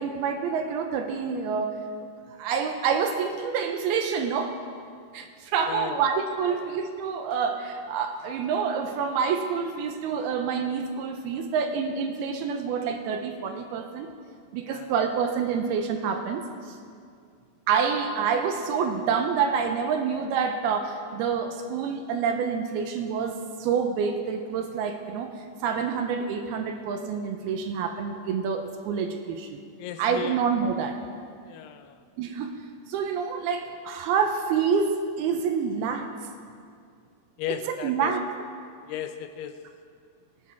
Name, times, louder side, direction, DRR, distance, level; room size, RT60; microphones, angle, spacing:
voice 1, 0.0-1.8 2.4-4.6 5.1-14.1 14.5-16.8 17.7-29.6 30.0-31.0 32.2-32.5 32.9-36.1 37.7-38.2, right 6 dB, 80° right, 5 dB, 2.4 m, -27 dB
voice 2, 5.7-6.1 6.5-6.7 14.6-14.9 29.8-30.4 31.4-32.0 37.4-38.1 38.9-39.7, left 10 dB, 80° left, 9 dB, 2.5 m, -36 dB
21.0 x 9.6 x 3.5 m, 2.2 s
omnidirectional pair, 4.8 m